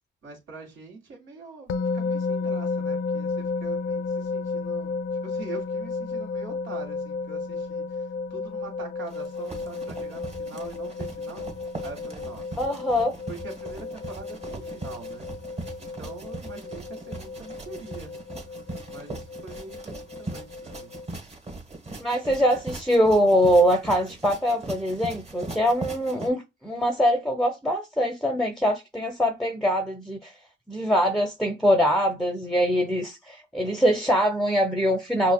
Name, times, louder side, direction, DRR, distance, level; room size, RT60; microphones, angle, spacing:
voice 1, 0.2-11.5 11.8-12.5 13.3-15.3 15.8-18.1 18.9-20.9, right 3 dB, 70° right, 1.9 m, -43 dB
sound 1, 1.7-21.1, left 4 dB, 80° left, 0.6 m, -33 dB
sound 2, 9.1-26.3, right 2 dB, 35° right, 1.3 m, -40 dB
voice 2, 12.6-13.2 22.0-30.3 30.7-35.3, equal, ahead, 0.6 m, -23 dB
5.4 x 2.5 x 2.2 m
cardioid pair, 90°, 20 cm